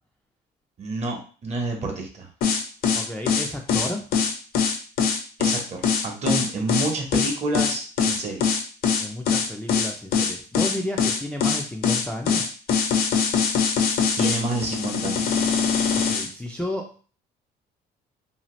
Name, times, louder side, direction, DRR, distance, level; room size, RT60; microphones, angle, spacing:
voice 1, 0.8-2.3 5.4-8.6 14.2-15.4, right 2 dB, 40° right, 2 dB, 0.9 m, -29 dB
sound 1, 2.4-16.3, left 6 dB, 60° left, 0.6 m, -22 dB
voice 2, 2.9-4.1 8.2-8.3 9.0-12.5 15.9-17.0, left 1 dB, 5° left, 0 dB, 0.4 m, -32 dB
2.8 x 2.4 x 3.0 m, 0.38 s
cardioid pair, 110°, 17 cm